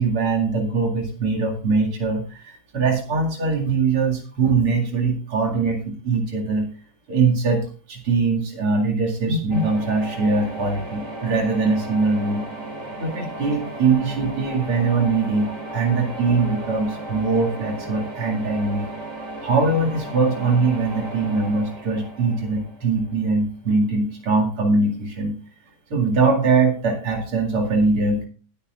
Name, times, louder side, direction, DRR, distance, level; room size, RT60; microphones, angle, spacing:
voice 1, 0.0-6.7 7.1-12.4 13.0-18.9 19.4-25.4 25.9-28.3, right 4 dB, 85° right, 1 dB, 3.2 m, -22 dB
sound 1, 9.5-23.3, right 1 dB, 35° right, 3.2 m, -35 dB
20.0 x 8.8 x 2.5 m, 0.37 s
omnidirectional pair, 2.4 m